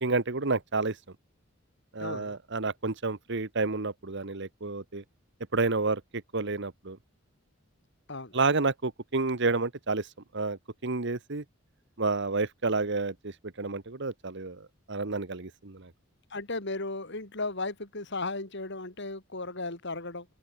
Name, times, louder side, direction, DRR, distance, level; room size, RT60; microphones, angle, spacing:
voice 1, 0.0-1.0 1.9-5.0 5.5-6.0 6.3-7.0 8.3-10.1 10.3-11.4 12.0-15.9, right 3 dB, 60° right, 1.4 m, -30 dB
voice 2, 2.0-2.3 8.1-8.3 16.3-20.3, left 3 dB, 60° left, 4.1 m, -35 dB
head